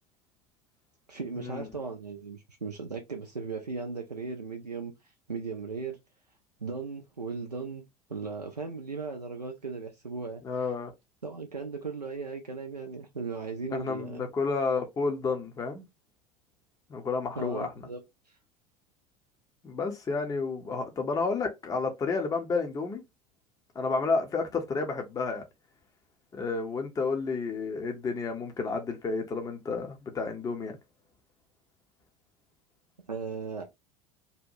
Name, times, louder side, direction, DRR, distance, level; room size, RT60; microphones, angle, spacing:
voice 1, 1.1-4.9 5.3-6.0 6.6-7.8 8.1-10.4 11.2-14.3 17.4-18.0 33.1-33.6, right 4 dB, 90° right, 0.4 m, -37 dB
voice 2, 10.4-10.9 13.7-15.9 16.9-17.7 19.6-23.0 23.8-25.4 26.3-30.8, left 4 dB, 15° left, 0.6 m, -31 dB
2.7 x 2.2 x 2.6 m
figure-of-eight pair, 75°, 20 cm